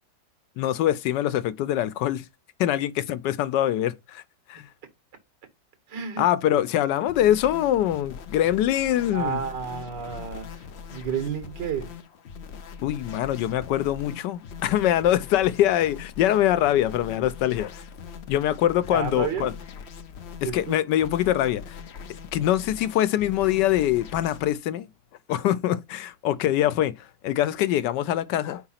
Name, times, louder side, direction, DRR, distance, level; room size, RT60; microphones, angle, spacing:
voice 1, 0.6-2.2 2.6-4.2 4.5-4.7 6.2-9.4 12.8-17.7 18.3-19.5 20.5-21.8 22.3-24.9 25.3-28.6, left 12 dB, 85° left, 1.2 m, -23 dB
voice 2, 5.9-6.2 9.1-10.6 10.9-11.9 18.9-19.5 20.4-20.5, right 7 dB, 85° right, 2.0 m, -31 dB
sound 1, 7.1-24.5, left 6 dB, 60° left, 0.7 m, -42 dB
4.9 x 4.1 x 5.7 m
omnidirectional pair, 1.9 m